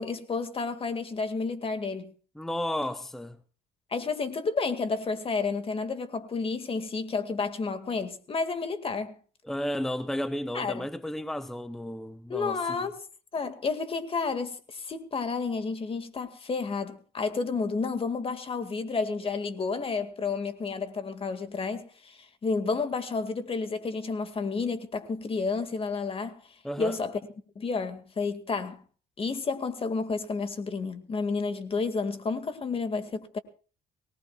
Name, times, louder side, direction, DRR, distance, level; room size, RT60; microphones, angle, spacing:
voice 1, 0.0-2.1 3.9-9.2 10.5-10.9 12.3-12.9 13.3-26.4 26.8-27.2 27.6-28.8 29.2-33.4, left 4 dB, 35° left, 2.0 m, -31 dB
voice 2, 2.4-3.4 9.4-12.9 26.6-27.0, left 1 dB, ahead, 0.8 m, -33 dB
23.5 x 18.5 x 2.4 m
cardioid pair, 110°, 17 cm